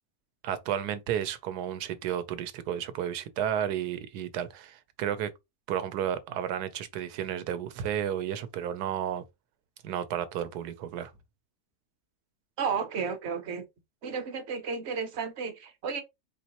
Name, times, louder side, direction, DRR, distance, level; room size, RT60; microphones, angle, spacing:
voice 1, 0.4-5.3 5.7-9.2 9.8-11.1, right 10 dB, 85° right, 1.2 m, -32 dB
voice 2, 12.6-13.7 14.0-16.0, right 5 dB, 55° right, 0.9 m, -32 dB
4.5 x 3.0 x 2.8 m
omnidirectional pair, 1.7 m